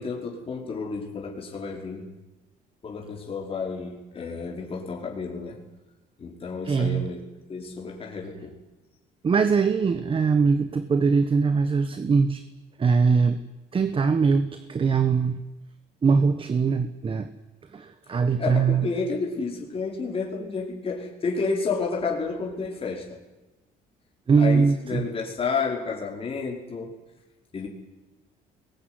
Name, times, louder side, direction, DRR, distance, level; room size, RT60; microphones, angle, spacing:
voice 1, 0.0-2.1 2.8-5.6 6.2-7.2 7.5-8.6 18.4-23.2 24.4-26.9 27.5-27.7, left 4 dB, 35° left, -1 dB, 5.1 m, -31 dB
voice 2, 6.6-7.1 9.2-12.4 12.8-13.4 13.7-15.4 16.0-17.3 17.7-18.9 24.3-25.1, right 5 dB, 30° right, 10 dB, 1.3 m, -22 dB
21.5 x 21.5 x 9.7 m, 1.1 s
cardioid pair, 110°, 17 cm